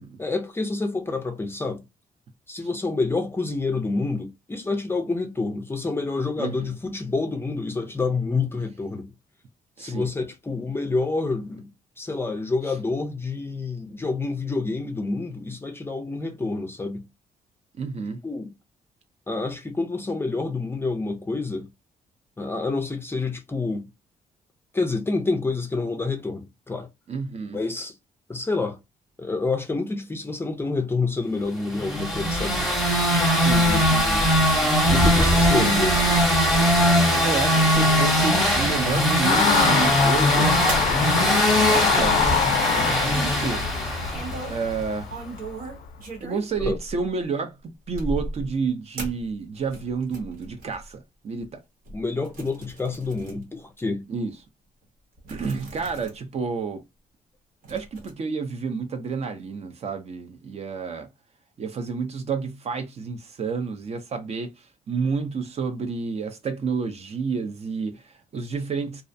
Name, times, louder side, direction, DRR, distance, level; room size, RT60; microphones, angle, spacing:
voice 1, 0.2-1.8 2.5-9.1 9.8-11.7 12.0-17.0 18.2-18.5 19.3-21.7 22.4-23.9 24.7-26.9 27.5-27.9 28.3-28.8 29.2-32.6 34.9-36.2 46.6-46.8 51.9-54.0, left 3 dB, 15° left, 0.4 m, -28 dB
voice 2, 17.8-18.2 27.1-27.6 33.4-34.3 34.9-35.7 37.2-40.6 41.5-42.2 42.7-43.6 44.5-45.1 46.2-47.6 47.9-51.6 54.1-54.3 55.3-56.8 57.7-61.1 61.6-69.0, right 5 dB, 45° right, 0.6 m, -30 dB
sound 1, 31.7-44.6, equal, ahead, 0.8 m, -20 dB
Car passing by / Accelerating revving vroom, 39.3-45.9, left 8 dB, 70° left, 0.4 m, -26 dB
sound 2, 40.7-41.0 41.6-43.2 44.1-44.7 45.0-47.2 47.9-48.5 49.0-50.8 51.4-51.5 51.9-53.4 53.8-53.9 54.8-54.9 55.2-56.2 56.5-56.6 57.6-58.1, right 2 dB, 75° right, 1.0 m, -36 dB
2.4 x 2.0 x 2.6 m
cardioid pair, 100°, 15 cm